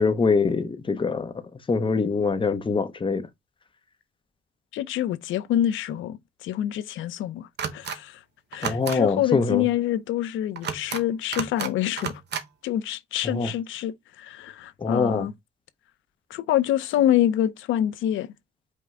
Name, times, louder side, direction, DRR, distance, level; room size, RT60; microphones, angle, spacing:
voice 1, 0.0-1.3 1.7-3.3 8.6-9.7 13.2-13.5 14.8-15.3, left 4 dB, 25° left, 0.7 m, -24 dB
voice 2, 4.7-8.2 8.5-12.2 12.6-15.3 16.3-18.3, left 12 dB, 80° left, 0.5 m, -26 dB
sound 1, 7.6-8.0 8.5-9.0 10.6-11.0 11.3-11.7 12.0-12.4, right 7 dB, 60° right, 0.8 m, -31 dB
5.2 x 2.1 x 3.5 m
cardioid pair, 90°, 20 cm